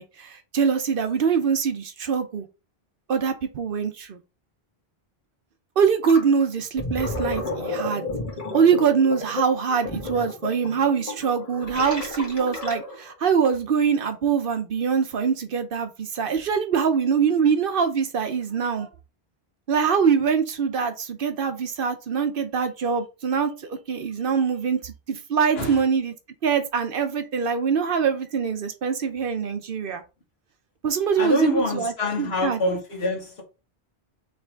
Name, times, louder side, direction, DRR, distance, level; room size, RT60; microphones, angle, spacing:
voice 1, 0.0-2.5 3.1-4.2 5.8-8.0 8.5-18.9 19.7-26.1 26.4-30.0 30.8-31.9 32.2-32.6, right 6 dB, 60° right, 0.9 m, -23 dB
Gurgling, 6.0-6.3 6.6-13.1, left 2 dB, 35° left, 1.5 m, -32 dB
voice 2, 31.2-33.4, left 1 dB, 80° left, 1.7 m, -25 dB
3.4 x 3.2 x 4.4 m
omnidirectional pair, 1.0 m